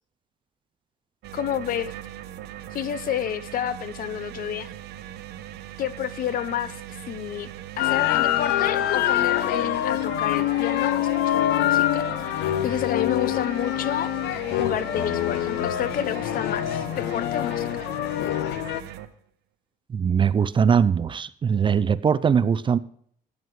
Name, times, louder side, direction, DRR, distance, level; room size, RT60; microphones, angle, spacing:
sound 1, 1.2-19.1, right 12 dB, 75° right, 0.9 m, -40 dB
voice 1, 1.3-2.0 2.7-4.7 5.8-7.5 7.8-12.1 12.6-14.1 14.6-17.8, left 10 dB, 55° left, 16 dB, 0.8 m, -30 dB
sound 2, 7.8-18.8, left 13 dB, 90° left, 0.7 m, -25 dB
voice 2, 19.9-22.8, right 7 dB, 30° right, 16 dB, 0.5 m, -21 dB
14.5 x 9.6 x 3.2 m, 0.62 s
cardioid pair, 110°, 17 cm